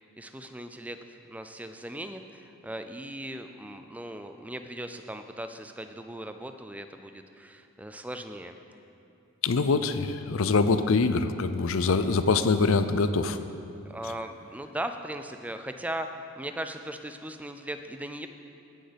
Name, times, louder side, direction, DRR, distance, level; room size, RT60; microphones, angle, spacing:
voice 1, 0.2-8.6 13.9-18.3, right 1 dB, 5° right, 8 dB, 0.3 m, -38 dB
voice 2, 9.4-13.4, left 4 dB, 65° left, 11 dB, 0.5 m, -24 dB
15.5 x 6.5 x 5.1 m, 2.7 s
head